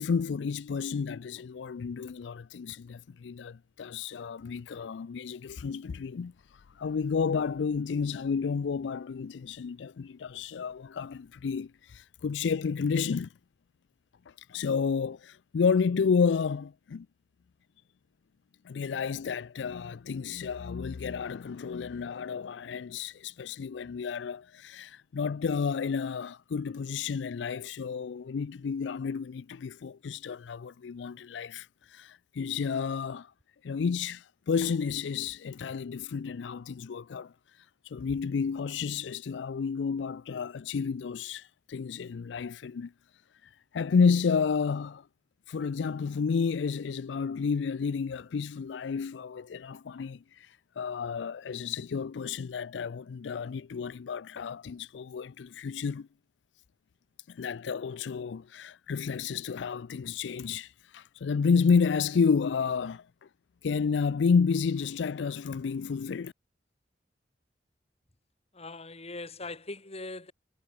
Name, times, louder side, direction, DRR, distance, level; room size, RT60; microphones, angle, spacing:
voice 1, 0.0-13.3 14.3-17.1 18.6-33.3 33.6-37.3 37.8-42.9 43.7-45.1 45.5-56.1 57.3-63.1 63.6-66.3, left 5 dB, 85° left, 0.4 m, -31 dB
voice 2, 68.5-70.3, left 2 dB, 35° left, 3.5 m, -40 dB
head